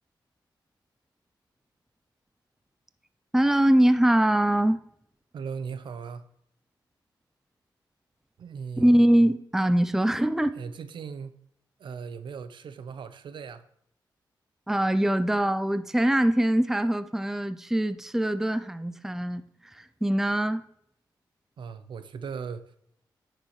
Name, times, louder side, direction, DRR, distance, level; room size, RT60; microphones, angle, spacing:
voice 1, 3.3-4.8 8.8-10.6 14.7-20.6, right 1 dB, 5° right, 0.5 m, -23 dB
voice 2, 5.3-6.2 8.4-8.9 10.6-11.4 11.8-13.6 21.6-22.6, right 6 dB, 75° right, 0.7 m, -38 dB
9.3 x 6.6 x 3.2 m
cardioid pair, 70°, 8 cm